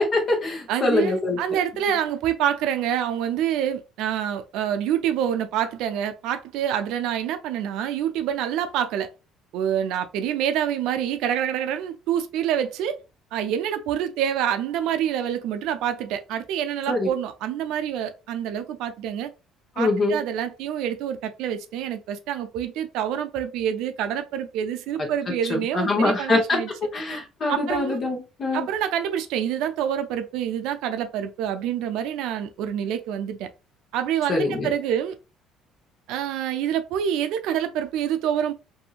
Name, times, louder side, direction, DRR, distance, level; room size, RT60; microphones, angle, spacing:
voice 1, 0.0-1.4 16.9-17.1 19.8-20.2 25.5-26.6 26.9-28.7 34.3-34.7, left 2 dB, 40° left, 1.0 m, -23 dB
voice 2, 0.7-9.1 9.5-13.0 13.3-19.3 19.8-26.7 27.5-28.0 28.5-33.5 33.9-35.1 36.1-38.5, right 9 dB, 80° right, 0.4 m, -27 dB
2.8 x 2.6 x 2.4 m
cardioid pair, 115°, 0 cm